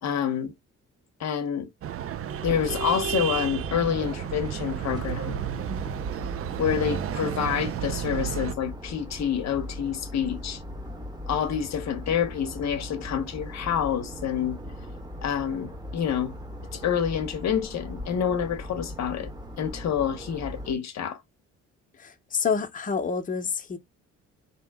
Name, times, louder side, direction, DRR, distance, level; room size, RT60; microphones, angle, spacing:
voice 1, 0.0-0.5 1.2-1.7 2.4-5.4 6.6-10.6 11.3-14.6 15.2-16.3 16.7-19.3 19.6-21.2, left 8 dB, 60° left, 0.8 m, -28 dB
sound 1, 1.8-8.5, right 9 dB, 50° right, 0.5 m, -32 dB
sound 2, 2.4-20.7, left 1 dB, 15° right, 1.1 m, -40 dB
voice 2, 22.0-23.8, left 6 dB, 25° left, 0.8 m, -28 dB
3.5 x 2.9 x 3.4 m
cardioid pair, 90°, 30 cm